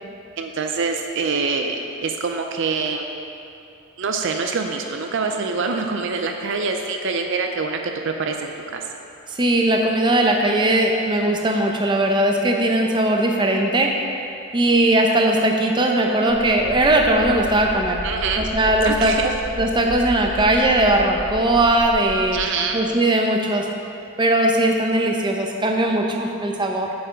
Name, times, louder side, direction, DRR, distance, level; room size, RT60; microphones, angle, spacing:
voice 1, 0.4-3.1 4.0-7.8 8.1-8.8 18.0-18.4 18.8-19.3 22.3-22.8, right 4 dB, 55° right, 4 dB, 0.5 m, -25 dB
voice 2, 9.3-13.9 14.5-18.0 18.4-19.3 19.6-22.4 22.7-23.7 24.2-26.9, right 1 dB, 20° right, 1 dB, 0.7 m, -19 dB
sound 1, 16.3-22.4, equal, 60° left, 1.4 m, -33 dB
8.6 x 6.7 x 5.1 m, 2.7 s
head